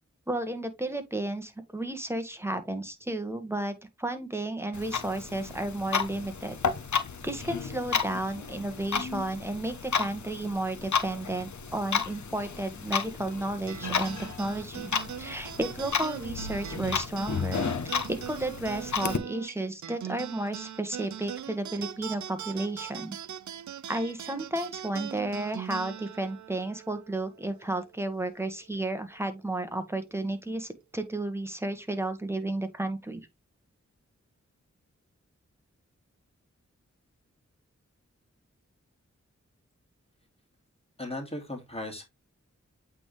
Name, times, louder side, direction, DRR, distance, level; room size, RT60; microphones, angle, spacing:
voice 1, 0.3-6.6 7.2-14.9 15.2-23.2 23.9-33.2, right 2 dB, 10° right, 1.5 m, -33 dB
Clock, 4.7-19.2, left 6 dB, 75° left, 0.9 m, -33 dB
sound 1, 13.7-28.4, right 10 dB, 80° right, 0.5 m, -41 dB
voice 2, 41.0-42.0, left 1 dB, 20° left, 2.4 m, -36 dB
8.3 x 3.7 x 3.2 m
cardioid pair, 45°, 29 cm